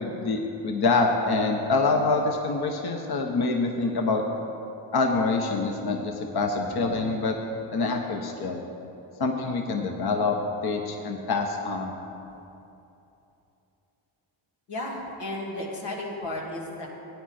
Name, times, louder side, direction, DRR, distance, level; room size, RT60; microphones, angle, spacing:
voice 1, 0.0-4.2 4.9-7.4 7.7-8.6 9.2-10.4 10.6-11.9, left 3 dB, 50° left, 2 dB, 1.2 m, -26 dB
voice 2, 14.7-16.9, left 1 dB, 85° left, -3 dB, 2.2 m, -33 dB
14.5 x 9.4 x 4.4 m, 2.9 s
supercardioid pair, 55°, 50 cm